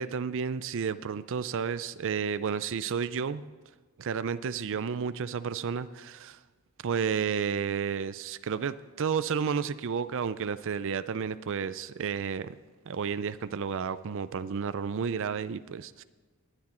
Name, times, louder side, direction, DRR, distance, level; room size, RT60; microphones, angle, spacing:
voice 1, 0.0-3.4 4.0-6.4 6.8-12.5 12.9-16.0, right 6 dB, 60° right, 14 dB, 0.5 m, -31 dB
19.0 x 9.7 x 4.4 m, 1.4 s
head